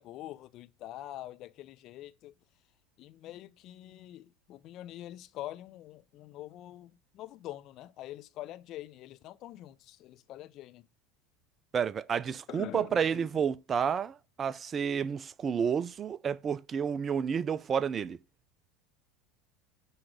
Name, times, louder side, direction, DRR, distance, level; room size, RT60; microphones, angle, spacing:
voice 1, 0.0-2.3 3.0-10.8 12.5-13.4, left 14 dB, 50° left, 0.7 m, -45 dB
voice 2, 11.7-18.2, right 7 dB, 30° right, 0.4 m, -30 dB
9.5 x 3.2 x 6.3 m
figure-of-eight pair, 75°, 0 cm